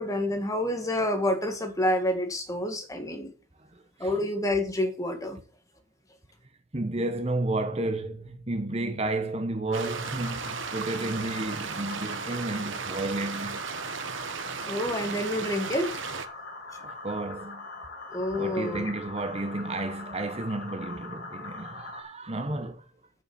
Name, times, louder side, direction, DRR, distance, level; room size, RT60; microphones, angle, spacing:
voice 1, 0.0-3.3 4.0-5.4 14.7-15.9 18.1-18.9, left 1 dB, 15° left, 1.8 m, -28 dB
voice 2, 3.7-4.1 6.7-13.6 16.8-17.6 18.3-22.9, right 2 dB, 30° right, 1.0 m, -32 dB
sound 1, 9.7-22.0, left 3 dB, 50° left, 3.3 m, -42 dB
sound 2, 9.7-16.3, right 6 dB, 60° right, 1.0 m, -36 dB
8.6 x 7.1 x 7.0 m
head